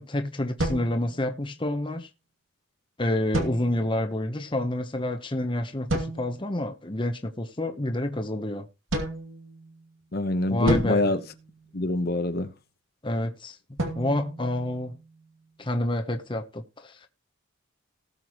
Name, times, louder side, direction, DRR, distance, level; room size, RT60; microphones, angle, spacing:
voice 1, 0.0-2.1 3.0-8.7 10.5-11.1 13.0-13.6 14.0-15.0 15.6-17.1, left 1 dB, 25° left, 0.9 m, -28 dB
sound 1, 0.6-1.7 3.3-4.1 5.9-6.6 8.9-10.0 10.7-12.1 13.8-15.3, right 1 dB, 70° right, 2.7 m, -33 dB
voice 2, 10.1-11.2 11.7-12.5, left 2 dB, 50° left, 1.0 m, -25 dB
18.5 x 6.8 x 3.0 m
head